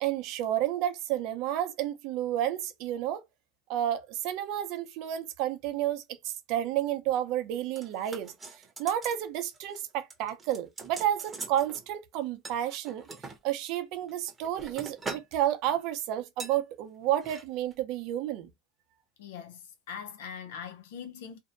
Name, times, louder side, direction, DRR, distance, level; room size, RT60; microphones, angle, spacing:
voice 1, 0.0-3.2 3.7-8.3 8.8-13.0 13.4-18.5, right 12 dB, 60° right, 0.6 m, -31 dB
sound 1, 7.8-9.2 9.5-9.8 10.1-11.8 12.4-13.4 14.0-15.4 15.7-15.9 16.4-16.6 17.1-17.4 17.7-17.8, right 3 dB, 20° right, 0.8 m, -42 dB
voice 2, 19.2-21.4, left 7 dB, 85° left, 0.6 m, -42 dB
2.6 x 2.2 x 2.5 m
supercardioid pair, 120°, 0 cm